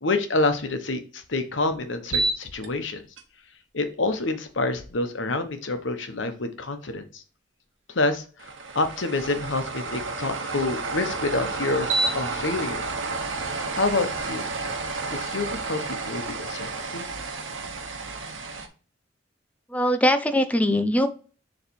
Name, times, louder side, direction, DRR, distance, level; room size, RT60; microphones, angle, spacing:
voice 1, 0.0-3.0 3.7-7.2 7.9-12.8 13.7-14.5 15.1-17.1, left 2 dB, 70° left, 8 dB, 1.0 m, -28 dB
sound 1, 2.1-2.7 3.2-3.3 8.4-18.7, right 3 dB, 85° right, 1.0 m, -30 dB
voice 2, 19.7-21.1, equal, 10° left, 9 dB, 0.5 m, -21 dB
6.9 x 3.2 x 4.5 m, 0.38 s
head